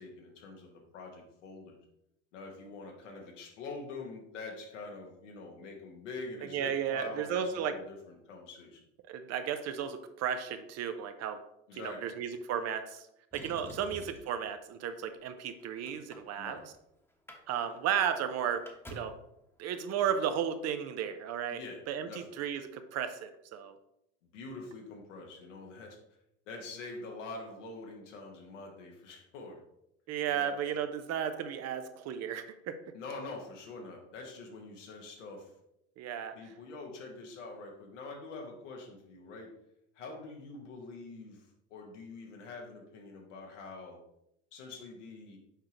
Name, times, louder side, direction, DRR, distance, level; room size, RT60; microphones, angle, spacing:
voice 1, 0.0-1.8 2.3-8.8 11.7-12.1 13.7-13.9 16.4-16.6 21.5-21.8 22.0-22.3 24.3-26.0 26.5-29.6 30.3-30.5 32.9-35.5 36.3-39.5 39.9-44.0 44.5-45.4, left 3 dB, 75° left, 1 dB, 1.6 m, -45 dB
voice 2, 6.5-7.7 9.1-11.4 11.7-13.1 13.3-16.6 17.5-19.2 19.6-21.6 21.9-23.8 30.1-32.8 36.0-36.4, right 8 dB, 45° right, 9 dB, 0.7 m, -34 dB
Motor vehicle (road), 13.3-14.4 15.2-16.8 17.1-17.4 17.7-17.8 18.1-19.3 20.3-20.4, equal, 5° left, 1.2 m, -49 dB
6.7 x 4.8 x 3.0 m, 0.80 s
hypercardioid pair, 85°, 37 cm